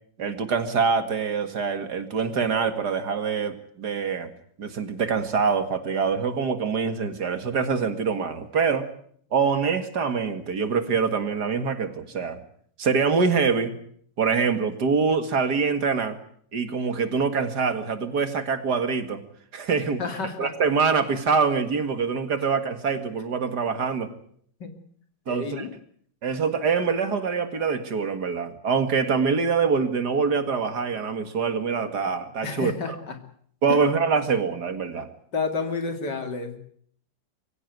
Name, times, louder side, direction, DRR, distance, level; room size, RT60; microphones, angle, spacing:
voice 1, 0.2-4.3 4.6-8.9 9.3-12.4 12.8-13.7 14.2-16.2 16.5-19.2 19.5-20.0 20.4-24.1 25.3-25.7 26.2-32.7 33.6-35.1, right 5 dB, 60° right, 9 dB, 2.4 m, -24 dB
voice 2, 20.0-20.5 24.6-24.7 25.3-25.7 32.4-33.2 33.7-33.8 35.3-36.6, left 4 dB, 65° left, 7 dB, 3.0 m, -30 dB
23.5 x 16.0 x 9.3 m, 0.63 s
omnidirectional pair, 2.0 m